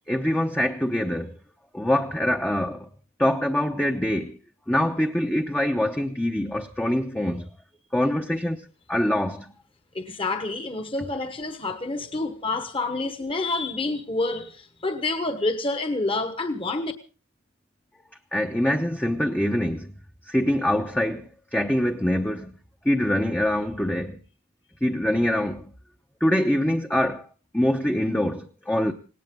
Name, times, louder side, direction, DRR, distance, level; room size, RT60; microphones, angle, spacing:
voice 1, 0.1-1.4 1.7-2.9 3.2-4.4 4.7-7.5 7.9-9.5 18.3-19.9 20.3-22.5 22.8-24.2 24.8-25.7 26.2-27.3 27.5-28.9, left 1 dB, 5° left, 0.8 m, -24 dB
voice 2, 9.9-16.9, left 2 dB, 25° left, 1.2 m, -28 dB
19.0 x 18.5 x 3.7 m
head